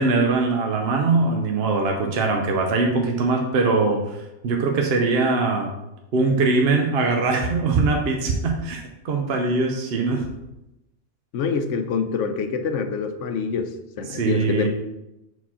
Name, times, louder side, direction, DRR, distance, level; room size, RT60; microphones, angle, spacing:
voice 1, 0.0-4.2 4.4-5.7 6.1-10.3 14.1-14.7, right 3 dB, 60° right, 2 dB, 0.9 m, -22 dB
voice 2, 11.3-13.7 14.0-14.7, left 5 dB, 80° left, 7 dB, 1.0 m, -25 dB
4.6 x 4.0 x 5.6 m, 0.91 s
omnidirectional pair, 1.2 m